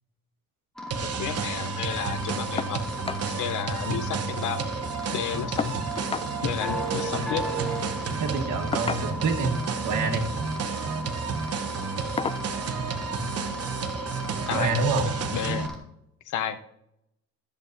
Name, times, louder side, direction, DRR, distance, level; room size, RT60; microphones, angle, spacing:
sound 1, 0.8-15.8, left 1 dB, ahead, 2.3 m, -36 dB
sound 2, 0.9-15.7, right 6 dB, 55° right, 1.0 m, -32 dB
voice 1, 1.0-2.8 3.3-4.7 5.1-5.8 6.4-7.5 13.2-13.6 14.5-14.8 15.3-15.7 16.3-16.6, left 9 dB, 80° left, 10 dB, 0.8 m, -32 dB
sound 3, 2.6-2.8 3.1-3.3 3.7-3.8 4.0-4.7 5.6-6.3 7.6-7.8 8.7-9.4 10.4-10.7 11.2-11.4 12.2-12.5 13.8-13.9 14.4-14.5, left 5 dB, 20° left, 0.4 m, -33 dB
voice 2, 8.2-9.5 9.8-10.2 14.5-15.1, right 3 dB, 75° right, 4 dB, 1.6 m, -26 dB
13.5 x 8.0 x 2.7 m, 0.80 s
cardioid pair, 90°, 30 cm